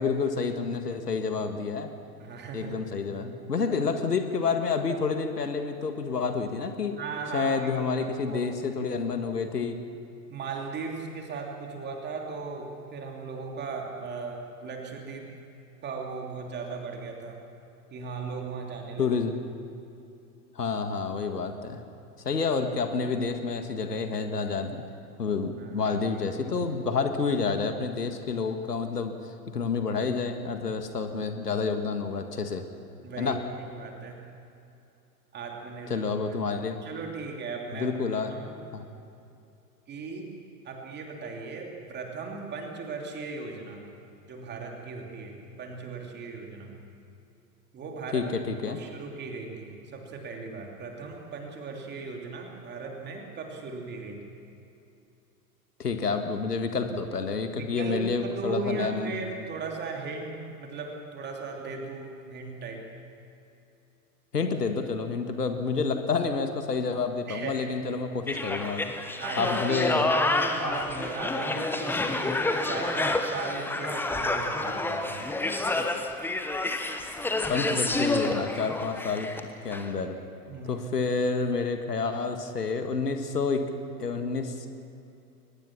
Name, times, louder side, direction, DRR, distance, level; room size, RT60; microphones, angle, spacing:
voice 1, 0.0-1.9 2.5-7.0 7.3-9.8 19.0-19.3 20.6-21.8 22.3-24.8 25.2-29.2 29.5-32.7 33.2-33.4 35.9-36.8 37.7-38.4 38.7-38.8 48.1-48.8 55.8-59.1 64.3-68.8 69.4-70.0 77.5-79.3 79.6-80.2 80.7-83.7 84.0-84.7, left 4 dB, 75° left, 7 dB, 1.8 m, -29 dB
voice 2, 2.2-2.9 7.0-8.4 10.3-15.3 15.8-17.4 17.9-19.2 25.6-26.0 33.0-34.3 35.3-36.4 36.8-37.9 38.3-38.6 39.9-40.3 40.6-43.9 44.3-46.7 47.7-48.3 48.7-54.3 57.5-62.9 67.3-67.7 69.2-72.0 72.6-75.2 80.5-80.9, right 4 dB, 20° right, 1 dB, 3.1 m, -37 dB
sound 1, 68.3-79.4 79.7-79.9, left 2 dB, 5° left, 1.0 m, -29 dB
22.5 x 20.0 x 6.0 m, 2.7 s
figure-of-eight pair, 95°, 48 cm